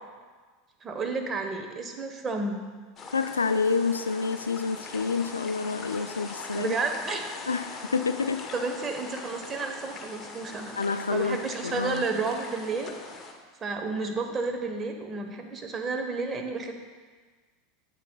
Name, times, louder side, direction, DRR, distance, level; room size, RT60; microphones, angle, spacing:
voice 1, 0.8-2.6 6.5-7.3 8.5-10.8 11.1-12.9 13.6-16.7, right 4 dB, 30° right, 4 dB, 1.1 m, -31 dB
sound 1, 3.0-13.3, left 3 dB, 30° left, 1.1 m, -41 dB
voice 2, 3.1-6.8 7.5-8.5 10.8-12.0, left 4 dB, 90° left, 10 dB, 0.3 m, -28 dB
10.5 x 8.1 x 2.3 m, 1.5 s
hypercardioid pair, 85°, 0 cm